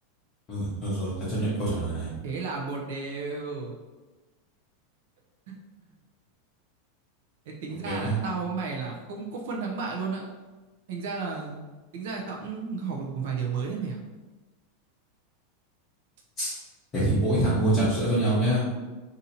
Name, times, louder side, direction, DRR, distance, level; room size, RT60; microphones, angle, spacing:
voice 1, 0.5-2.1 7.8-8.2 16.4-16.5 16.9-18.7, right 1 dB, 20° left, -10 dB, 0.8 m, -25 dB
voice 2, 2.2-3.7 5.5-5.6 7.5-10.2 10.9-11.6 11.9-14.0, right 5 dB, 55° right, -1 dB, 0.5 m, -33 dB
2.7 x 2.6 x 4.1 m, 1.2 s
supercardioid pair, 180°, 0 cm